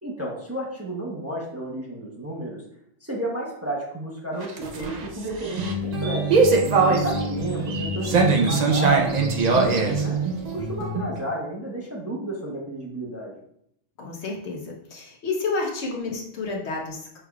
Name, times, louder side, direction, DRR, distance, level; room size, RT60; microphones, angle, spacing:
voice 1, 0.0-2.6 3.0-6.2 6.8-10.2 10.5-13.3, right 1 dB, 15° right, -4 dB, 0.8 m, -32 dB
sound 1, 4.3-11.2, right 4 dB, 50° right, 0.6 m, -22 dB
voice 2, 14.0-17.2, left 3 dB, 70° left, -1 dB, 1.1 m, -30 dB
6.0 x 3.3 x 2.3 m, 0.72 s
omnidirectional pair, 1.2 m